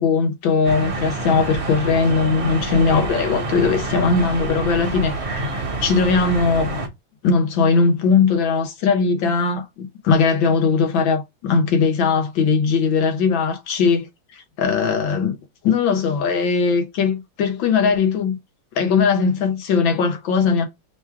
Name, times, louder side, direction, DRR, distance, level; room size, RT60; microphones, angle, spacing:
voice 1, 0.0-6.7 7.2-14.1 14.3-15.4 15.6-18.4 18.8-20.6, left 5 dB, 75° left, 1.7 m, -19 dB
sound 1, 0.6-6.9, right 2 dB, 45° right, 1.0 m, -27 dB
3.8 x 2.3 x 4.5 m
omnidirectional pair, 2.1 m